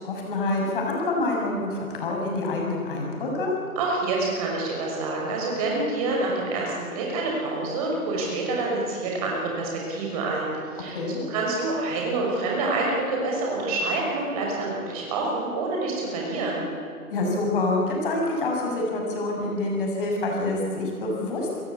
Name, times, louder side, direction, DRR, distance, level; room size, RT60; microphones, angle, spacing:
voice 1, 0.0-3.5 10.9-11.2 17.1-21.6, left 2 dB, 35° left, -1 dB, 7.2 m, -27 dB
voice 2, 3.8-11.0 11.3-16.6, right 2 dB, 25° right, -2 dB, 6.2 m, -27 dB
29.0 x 16.0 x 8.5 m, 2.3 s
figure-of-eight pair, 150°, 44 cm